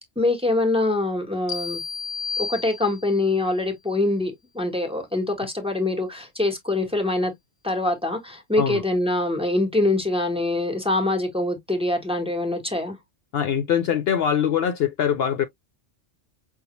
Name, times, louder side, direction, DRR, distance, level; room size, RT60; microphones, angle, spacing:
voice 1, 0.2-1.8 2.4-7.3 7.6-13.0, left 2 dB, 5° right, 1.1 m, -24 dB
sound 1, 1.5-3.3, left 5 dB, 35° left, 1.4 m, -32 dB
voice 2, 13.3-15.5, left 8 dB, 65° left, 0.8 m, -23 dB
5.5 x 2.3 x 3.0 m
omnidirectional pair, 1.2 m